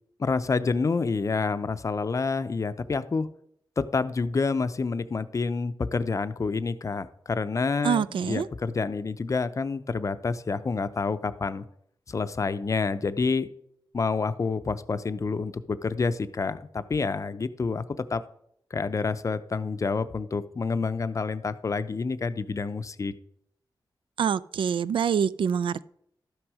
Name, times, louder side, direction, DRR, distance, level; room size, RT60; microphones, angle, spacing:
voice 1, 0.2-3.3 3.8-11.7 12.1-13.5 13.9-18.2 18.7-23.1, left 4 dB, 40° left, 0.5 m, -28 dB
voice 2, 7.8-8.5 24.2-25.9, right 7 dB, 75° right, 0.3 m, -25 dB
12.0 x 6.1 x 4.8 m
wide cardioid pair, 90°, 9 cm